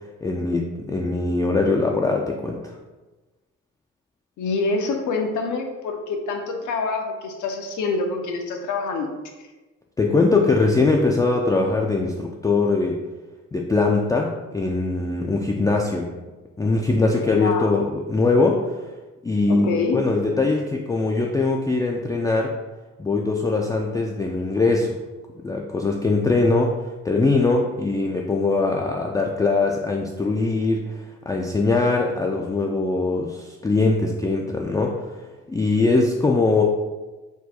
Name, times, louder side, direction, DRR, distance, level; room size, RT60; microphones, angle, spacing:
voice 1, 0.2-2.7 10.0-13.0 13.5-16.1 16.6-18.8 19.2-19.7 19.9-22.5 23.0-25.0 25.4-31.0 31.3-34.9 35.5-36.6, left 3 dB, 10° left, -1 dB, 0.3 m, -21 dB
voice 2, 4.4-9.1 17.3-17.8 19.5-20.0, left 3 dB, 80° left, 4 dB, 0.7 m, -26 dB
4.5 x 2.2 x 4.2 m, 1.2 s
cardioid pair, 90°, 30 cm